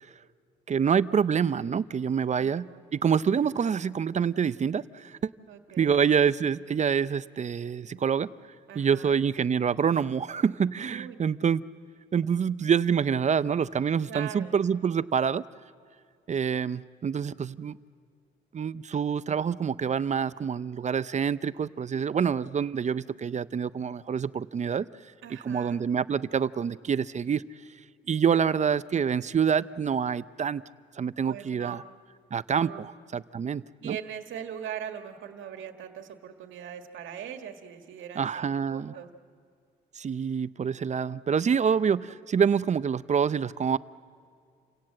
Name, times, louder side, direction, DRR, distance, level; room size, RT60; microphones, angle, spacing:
voice 1, 0.7-5.3 5.8-8.3 8.7-11.6 12.1-15.4 16.3-17.8 18.5-24.9 25.4-27.4 28.1-30.6 31.0-31.8 32.3-34.0 38.2-38.9 40.0-43.8, right 7 dB, 35° right, 16 dB, 0.6 m, -26 dB
voice 2, 2.3-2.8 5.5-6.0 8.7-9.2 10.9-11.2 14.1-14.6 25.2-25.8 28.3-28.5 31.3-31.8 32.5-32.8 33.8-39.1, right 9 dB, 75° right, 5 dB, 1.9 m, -41 dB
28.5 x 17.5 x 7.6 m, 2.3 s
cardioid pair, 90°, 20 cm